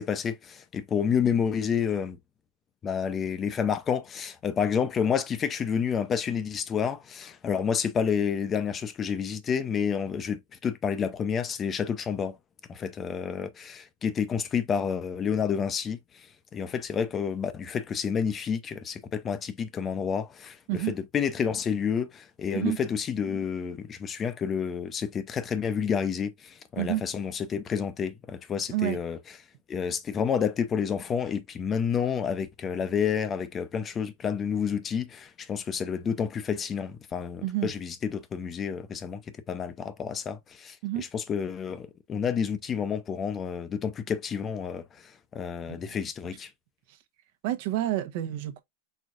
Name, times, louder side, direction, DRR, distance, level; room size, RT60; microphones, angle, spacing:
voice 1, 0.0-2.2 2.8-12.4 12.7-16.3 16.5-20.6 20.9-29.2 29.7-39.2 39.5-46.5, left 7 dB, 20° left, 0.6 m, -29 dB
voice 2, 37.4-37.7 40.8-41.0 45.7-45.8 46.9-47.0 47.4-48.6, right 14 dB, 55° right, 1.0 m, -29 dB
4.6 x 4.0 x 2.5 m
supercardioid pair, 140°, 0 cm